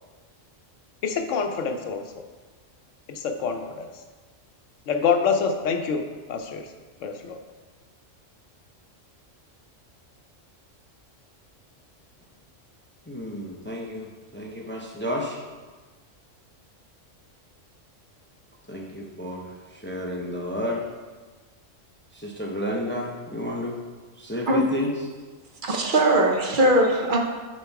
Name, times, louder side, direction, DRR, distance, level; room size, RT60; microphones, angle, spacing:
voice 1, 1.0-2.2 3.1-3.9 4.9-6.7 7.0-7.4, left 5 dB, 80° left, 5 dB, 1.0 m, -26 dB
voice 2, 13.1-15.4 18.7-19.5 19.8-20.8 22.1-23.8 24.2-24.9, left 1 dB, 10° left, -1 dB, 0.6 m, -31 dB
voice 3, 25.6-27.2, right 1 dB, 45° right, 1 dB, 0.9 m, -20 dB
7.3 x 4.1 x 4.6 m, 1.3 s
omnidirectional pair, 1.3 m